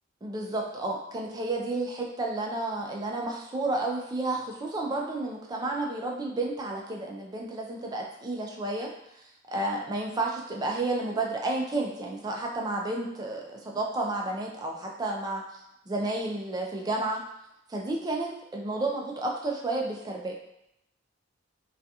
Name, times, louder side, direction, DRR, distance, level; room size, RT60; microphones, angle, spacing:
voice 1, 0.2-8.9 9.5-15.4 15.9-17.2 17.7-20.3, right 2 dB, 20° right, -1 dB, 0.3 m, -31 dB
2.4 x 2.3 x 2.6 m, 0.81 s
head